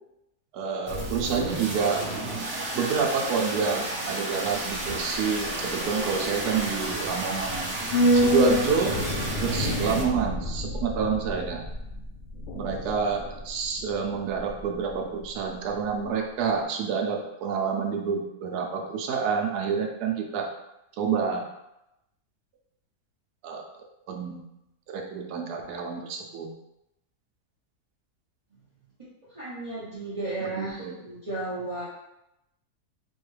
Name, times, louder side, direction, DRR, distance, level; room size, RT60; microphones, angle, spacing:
voice 1, 0.5-2.1 2.7-7.7 8.1-9.0 9.4-11.6 12.5-20.5 21.0-21.4 23.4-23.6 24.1-24.5 24.9-26.5 30.4-31.0, right 6 dB, 80° right, 2 dB, 1.1 m, -28 dB
sound 1, 0.9-10.0, right 2 dB, 45° right, 1.0 m, -32 dB
sound 2, 4.5-15.0 15.2-15.3, equal, 65° left, 0.8 m, -29 dB
voice 2, 29.3-31.9, right 2 dB, 25° right, -10 dB, 0.8 m, -34 dB
4.3 x 2.3 x 3.2 m, 0.87 s
omnidirectional pair, 1.7 m